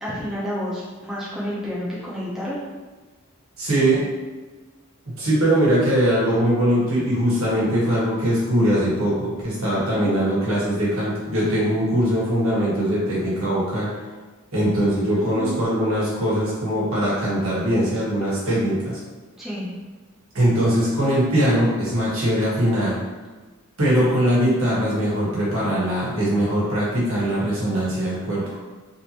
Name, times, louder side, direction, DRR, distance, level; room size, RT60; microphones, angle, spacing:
voice 1, 0.0-2.6 9.9-10.1 15.1-15.6 19.4-19.7, equal, ahead, -9 dB, 0.8 m, -30 dB
voice 2, 3.6-4.0 5.2-13.9 14.5-19.0 20.3-23.0 23.8-28.6, right 1 dB, 75° right, -7 dB, 1.3 m, -21 dB
3.4 x 2.8 x 2.9 m, 1.3 s
head